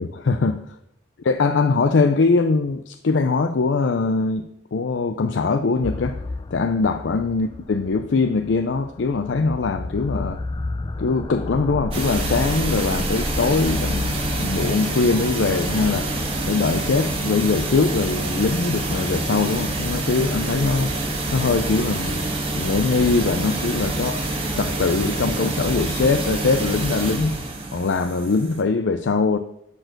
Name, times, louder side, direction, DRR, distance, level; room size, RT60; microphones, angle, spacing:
voice 1, 0.0-0.6 1.2-4.4 4.7-6.2 6.5-10.4 11.0-16.1 16.5-20.9 21.3-22.3 22.5-24.3 24.6-27.4 27.7-29.4, left 4 dB, 85° left, 9 dB, 0.5 m, -22 dB
sound 1, 5.8-22.1, left 2 dB, 25° left, 0.4 m, -33 dB
sound 2, 11.9-28.6, right 2 dB, 30° right, 1.5 m, -26 dB
10.5 x 4.5 x 6.5 m, 0.78 s
head